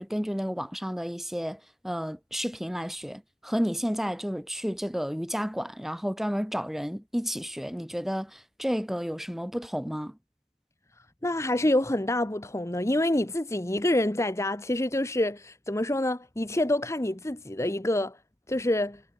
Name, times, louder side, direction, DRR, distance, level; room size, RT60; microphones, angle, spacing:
voice 1, 0.0-1.6 1.8-10.2, equal, ahead, 1.7 m, -31 dB
voice 2, 11.2-18.2 18.5-19.0, left 1 dB, 15° left, 1.1 m, -27 dB
head